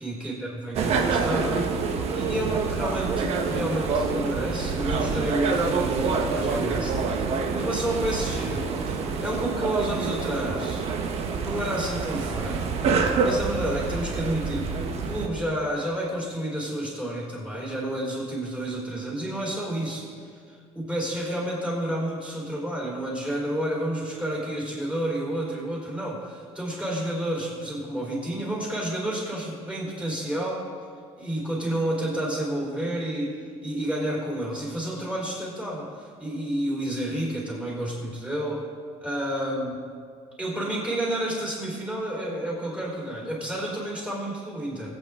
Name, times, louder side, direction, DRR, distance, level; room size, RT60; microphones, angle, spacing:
voice 1, 0.0-1.8 2.1-10.9 11.4-12.6 13.2-30.7 31.2-38.7 39.0-39.7 40.4-44.9, right 1 dB, 10° right, -5 dB, 4.1 m, -30 dB
sound 1, 0.7-15.3, right 4 dB, 60° right, 1.2 m, -27 dB
22.0 x 8.8 x 3.8 m, 2.1 s
cardioid pair, 145°, 12 cm